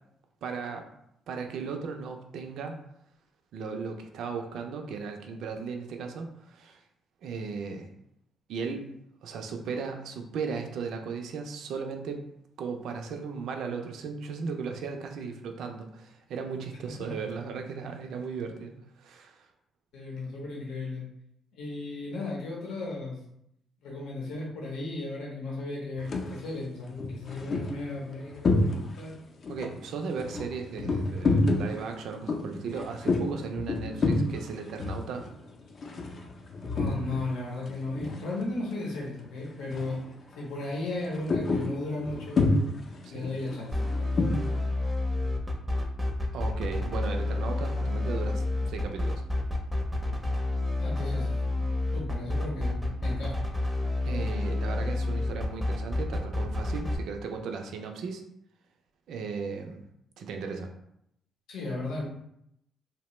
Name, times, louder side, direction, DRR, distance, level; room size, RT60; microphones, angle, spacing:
voice 1, 0.4-0.9 1.3-2.8 3.5-6.8 7.2-7.9 8.5-8.9 9.2-12.2 12.6-19.5 29.5-35.3 43.0-43.3 46.3-49.2 54.0-58.2 59.1-59.8 60.2-60.7, right 5 dB, 75° right, 4 dB, 0.3 m, -36 dB
voice 2, 19.9-21.0 21.5-23.2 23.8-29.1 36.7-40.0 40.4-42.4 43.1-43.8 50.8-51.3 51.9-53.5 61.5-62.0, left 2 dB, 85° left, -3 dB, 0.7 m, -35 dB
sound 1, 26.0-26.4 26.9-29.1 29.4-37.3 37.6-38.7 39.0-39.3 39.6-40.1 40.4-44.6, left 2 dB, 50° left, 0.5 m, -29 dB
sound 2, 43.7-57.0, left 2 dB, 10° right, 0.5 m, -29 dB
2.8 x 2.0 x 3.0 m, 0.76 s
cardioid pair, 90°, 0 cm